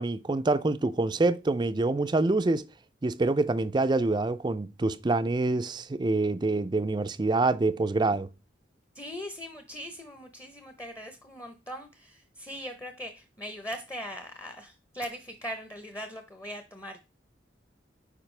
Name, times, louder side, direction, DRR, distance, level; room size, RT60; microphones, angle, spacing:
voice 1, 0.0-2.6 3.0-8.3, right 2 dB, 25° right, 0.4 m, -26 dB
voice 2, 8.9-17.0, equal, 15° left, 0.8 m, -40 dB
8.8 x 5.1 x 3.3 m
head